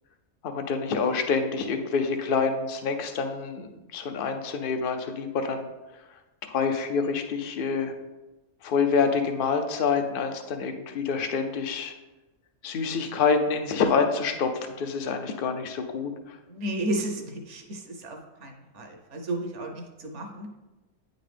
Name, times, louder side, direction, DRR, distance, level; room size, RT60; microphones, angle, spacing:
voice 1, 0.4-5.7 6.5-7.9 8.6-11.9 12.6-16.4, left 5 dB, 70° left, 6 dB, 0.5 m, -27 dB
voice 2, 16.5-20.5, right 1 dB, 60° right, 3 dB, 1.0 m, -33 dB
9.0 x 3.9 x 3.3 m, 1.1 s
omnidirectional pair, 1.5 m